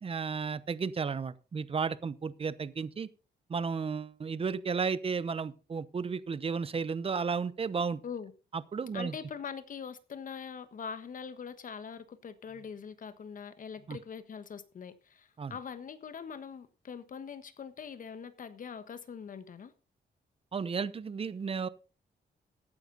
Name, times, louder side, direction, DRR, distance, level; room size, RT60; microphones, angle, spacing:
voice 1, 0.0-3.1 3.5-8.0 8.5-9.1 13.9-14.0 15.4-15.5 20.5-21.7, right 5 dB, 35° right, 0.8 m, -33 dB
voice 2, 8.9-19.7, left 6 dB, 50° left, 1.4 m, -43 dB
15.0 x 9.7 x 4.0 m
cardioid pair, 105°, 17 cm